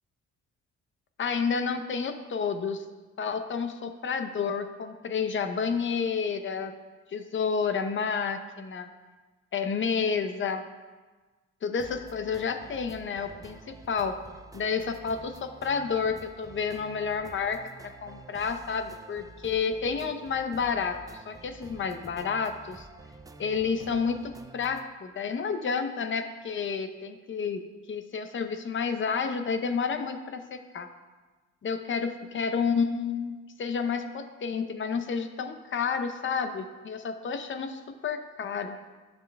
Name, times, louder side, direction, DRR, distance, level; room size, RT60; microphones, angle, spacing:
voice 1, 1.2-2.8 3.2-6.7 7.1-8.9 9.5-10.6 11.6-14.2 14.5-17.6 18.0-22.9 23.4-27.6 27.9-30.9 31.6-38.8, left 5 dB, 40° left, 8 dB, 0.7 m, -30 dB
sound 1, 11.8-24.9, right 3 dB, 10° right, 0.4 m, -49 dB
11.0 x 6.8 x 2.2 m, 1.3 s
cardioid pair, 90°, 30 cm